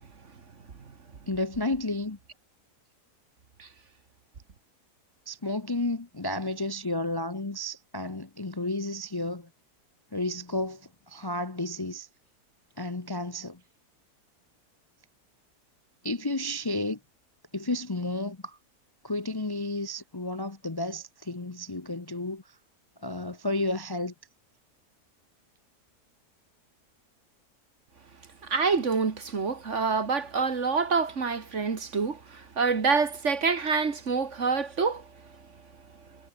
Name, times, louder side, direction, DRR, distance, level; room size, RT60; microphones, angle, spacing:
voice 1, 1.3-2.2 5.3-9.5 10.1-12.1 12.8-13.6 16.0-17.0 17.5-18.6 19.0-22.6 23.0-24.1, left 2 dB, 20° left, 0.8 m, -32 dB
voice 2, 28.4-35.0, right 5 dB, 50° right, 2.0 m, -27 dB
omnidirectional pair, 1.7 m